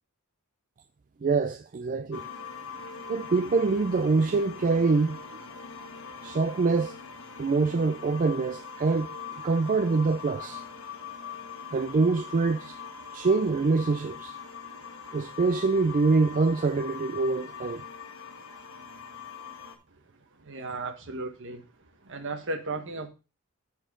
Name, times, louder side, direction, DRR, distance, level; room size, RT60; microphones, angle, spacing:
voice 1, 1.2-2.3 3.1-5.2 6.2-7.0 7.4-10.6 11.7-12.8 13.1-14.4 15.1-17.8, right 4 dB, 40° right, 0.4 m, -25 dB
sound 1, 2.1-19.8, left 5 dB, 65° left, 1.2 m, -42 dB
voice 2, 20.4-21.6 22.0-23.1, right 2 dB, 60° right, 1.3 m, -35 dB
13.0 x 4.6 x 3.7 m
head